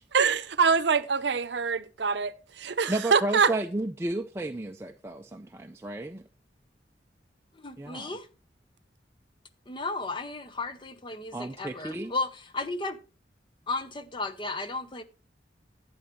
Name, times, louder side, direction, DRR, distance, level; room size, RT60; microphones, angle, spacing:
voice 1, 0.1-3.5, right 5 dB, 70° right, 0.7 m, -25 dB
voice 2, 2.9-6.2 7.8-8.1 11.3-12.1, right 2 dB, 15° right, 0.4 m, -32 dB
voice 3, 7.5-8.3 9.7-13.0 13.7-15.0, left 3 dB, 25° left, 0.7 m, -34 dB
11.5 x 8.8 x 3.1 m
head